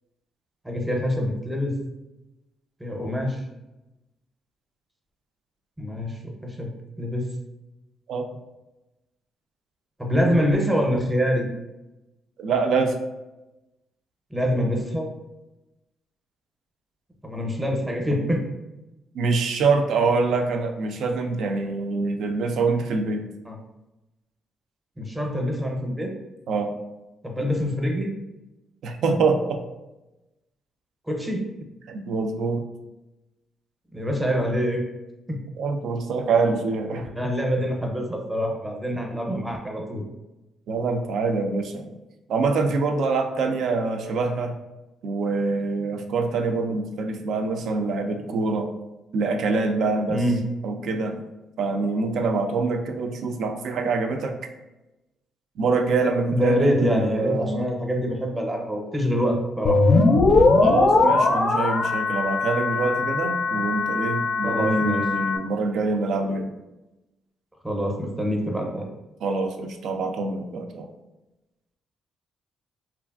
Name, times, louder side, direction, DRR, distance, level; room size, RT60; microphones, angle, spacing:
voice 1, 0.6-1.7 2.8-3.4 5.8-6.7 7.0-7.3 10.0-11.5 14.3-15.1 17.2-18.4 23.5-23.6 25.0-26.1 27.2-28.1 31.1-31.4 33.9-34.8 35.3-35.4 37.2-40.0 50.1-50.4 56.3-59.8 60.1-60.2 64.4-65.0 67.6-68.9, equal, 10° right, 1 dB, 0.6 m, -25 dB
voice 2, 12.4-13.0 19.1-23.3 26.5-26.7 28.8-29.6 31.9-32.6 35.6-37.3 40.7-42.0 42.3-44.6 45.0-48.7 49.1-50.2 50.6-51.2 51.6-54.4 55.6-57.7 60.6-66.5 69.2-70.9, right 4 dB, 70° right, 5 dB, 0.3 m, -25 dB
sound 1, 59.7-65.4, left 3 dB, 50° left, 0.4 m, -20 dB
3.0 x 2.4 x 2.3 m, 1.0 s
cardioid pair, 90°, 0 cm